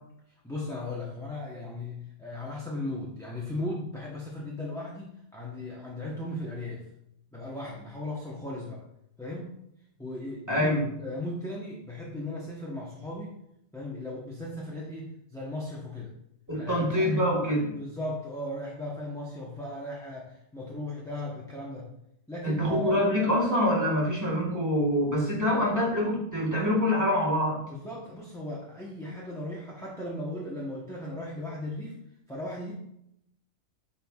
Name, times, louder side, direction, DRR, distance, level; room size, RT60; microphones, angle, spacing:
voice 1, 0.4-6.8 7.3-8.8 9.2-9.5 10.0-13.4 13.7-16.1 16.6-17.1 17.7-21.9 22.3-23.0 27.7-31.9 32.3-32.7, left 1 dB, 5° left, -5 dB, 0.8 m, -37 dB
voice 2, 10.5-10.8 16.5-17.8 22.4-27.6, left 1 dB, 15° right, -3 dB, 1.7 m, -25 dB
9.0 x 4.4 x 2.4 m, 0.78 s
omnidirectional pair, 1.4 m